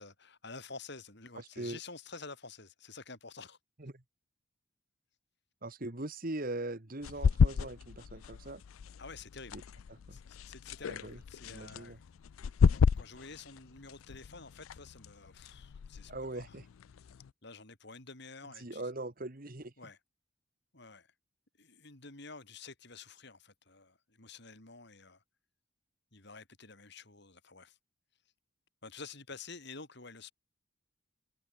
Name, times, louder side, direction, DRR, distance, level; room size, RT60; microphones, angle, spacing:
voice 1, 0.0-3.6 9.0-9.6 10.1-12.0 12.7-16.6 17.4-18.8 19.8-20.0 20.7-21.1 21.6-25.2 26.1-27.8 28.8-30.3, left 4 dB, 55° left, 4.4 m, -50 dB
voice 2, 1.3-1.8 3.8-4.0 5.6-8.6 9.5-9.6 9.9-10.2 10.9-12.0 16.1-16.6 18.6-19.7, right 2 dB, 45° right, 1.6 m, -41 dB
sound 1, 7.0-17.3, left 6 dB, 85° left, 0.4 m, -33 dB
head